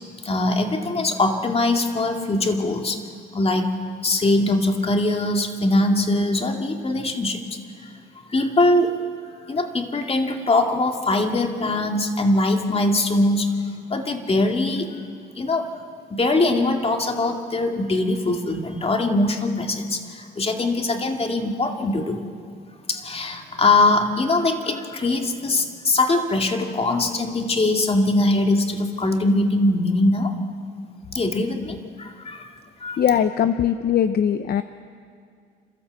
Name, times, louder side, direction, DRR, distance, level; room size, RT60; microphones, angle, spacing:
voice 1, 0.2-3.0 3.3-3.7 4.0-7.4 8.3-8.9 9.4-13.5 13.9-14.9 15.4-15.7 16.1-22.2 22.9-30.3 31.1-32.5 32.8-33.0, left 2 dB, 30° left, 3 dB, 2.5 m, -22 dB
voice 2, 33.0-34.6, left 9 dB, 50° left, 11 dB, 0.7 m, -20 dB
29.0 x 13.5 x 8.2 m, 2.2 s
cardioid pair, 90°, 20 cm